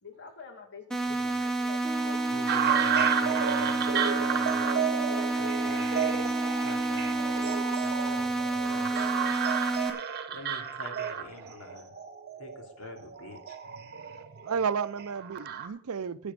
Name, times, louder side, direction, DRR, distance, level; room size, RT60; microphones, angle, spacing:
voice 1, 0.0-2.2 5.1-6.4, left 5 dB, 55° left, 2.0 m, -47 dB
sound 1, 0.9-9.9, right 2 dB, 5° left, 1.7 m, -29 dB
sound 2, 1.8-7.8, left 1 dB, 15° right, 0.4 m, -41 dB
voice 2, 2.3-4.2 5.3-6.3 6.6-9.4 10.3-12.0 12.4-13.6, left 2 dB, 85° left, 2.7 m, -46 dB
sound 3, 2.5-15.7, right 7 dB, 50° right, 1.2 m, -31 dB
voice 3, 14.4-16.3, right 6 dB, 75° right, 0.5 m, -33 dB
11.0 x 8.7 x 5.2 m
head